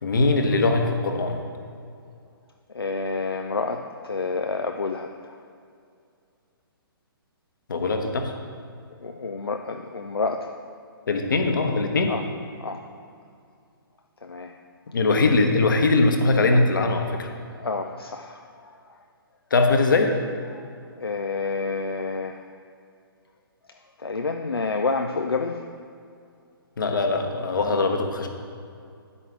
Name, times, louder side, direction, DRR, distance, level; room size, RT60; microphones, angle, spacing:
voice 1, 0.0-1.4 7.7-8.3 11.1-12.1 14.9-17.3 19.5-20.1 26.8-28.3, left 3 dB, 55° left, 4 dB, 1.2 m, -21 dB
voice 2, 2.7-5.4 9.0-10.5 12.1-12.3 12.6-12.8 14.2-14.5 17.5-19.0 20.5-20.6 21.0-22.5 23.7-25.6, left 4 dB, 75° left, 4 dB, 0.5 m, -29 dB
9.8 x 8.4 x 3.3 m, 2.4 s
figure-of-eight pair, 130°, 13 cm